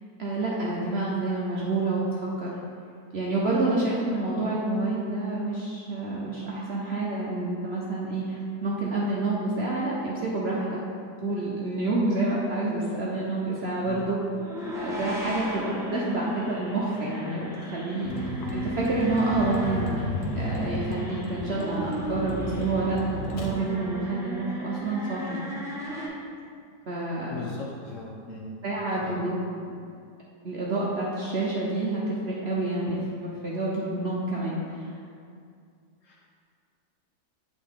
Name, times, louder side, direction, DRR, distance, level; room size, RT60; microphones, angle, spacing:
voice 1, 0.2-2.0 2.4-2.5 3.1-10.7 11.2-14.2 14.8-20.1 20.4-25.4 26.9-27.3 28.6-29.4 29.7-29.8 30.4-34.9, right 2 dB, 55° right, -5 dB, 0.7 m, -28 dB
sound 1, 14.3-26.1, equal, 5° right, 0.6 m, -36 dB
Vehicle, 18.0-23.5, left 1 dB, 85° left, 1.4 m, -34 dB
voice 2, 27.3-28.5 29.0-29.2 36.0-36.3, left 3 dB, 60° left, -2 dB, 0.9 m, -39 dB
8.3 x 3.8 x 3.6 m, 2.3 s
omnidirectional pair, 1.8 m